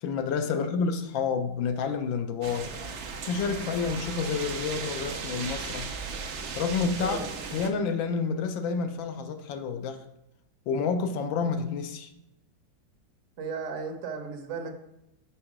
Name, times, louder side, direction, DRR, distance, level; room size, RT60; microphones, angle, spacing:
voice 1, 0.0-2.8 3.3-6.0 6.6-7.2 7.5-10.0 10.7-12.1, left 5 dB, 80° left, 1.4 m, -29 dB
sound 1, 2.4-7.7, right 5 dB, 90° right, 0.6 m, -36 dB
voice 2, 7.0-7.6 13.4-14.7, right 5 dB, 55° right, 0.9 m, -36 dB
5.9 x 4.4 x 4.9 m
omnidirectional pair, 2.1 m